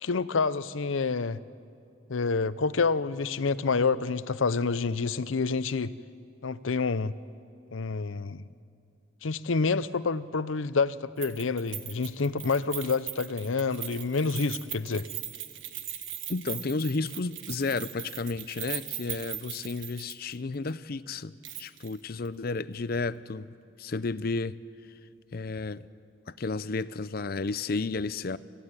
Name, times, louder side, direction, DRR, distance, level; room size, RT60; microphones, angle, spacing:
voice 1, 0.0-1.4 2.1-5.9 6.4-7.1 7.7-8.4 9.2-15.1, left 4 dB, 85° left, 0.7 m, -28 dB
Keys jangling, 11.2-20.4 20.7-20.8 21.4-22.0 22.3-22.4, right 11 dB, 75° right, 1.5 m, -39 dB
voice 2, 16.3-21.3 21.6-24.6 25.3-25.9 26.3-28.4, left 3 dB, 50° left, 0.5 m, -32 dB
25.0 x 16.0 x 9.7 m
head